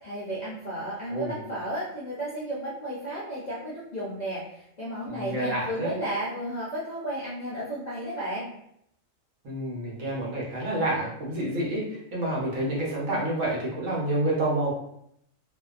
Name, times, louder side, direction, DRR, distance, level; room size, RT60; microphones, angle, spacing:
voice 1, 0.0-8.5, right 1 dB, 60° left, -7 dB, 0.4 m, -33 dB
voice 2, 5.1-6.0 9.4-14.7, right 1 dB, 70° right, -4 dB, 1.1 m, -28 dB
2.6 x 2.2 x 2.3 m, 0.75 s
omnidirectional pair, 1.4 m